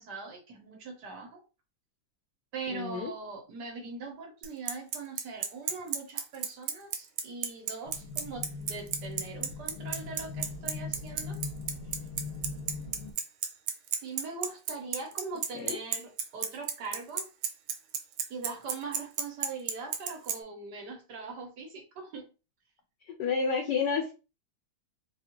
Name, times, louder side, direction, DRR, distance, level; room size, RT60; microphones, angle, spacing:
voice 1, 0.0-1.4 2.5-11.4 14.0-17.3 18.3-22.3, right 4 dB, 60° right, 2 dB, 1.3 m, -41 dB
voice 2, 2.7-3.1 15.5-15.8 23.0-24.1, left 5 dB, 70° left, 5 dB, 1.1 m, -30 dB
Bicycle, 4.4-20.3, right 8 dB, 80° right, 1.5 m, -31 dB
sound 1, 7.9-13.1, left 4 dB, 90° left, 1.7 m, -40 dB
4.1 x 2.4 x 2.9 m, 0.32 s
omnidirectional pair, 2.3 m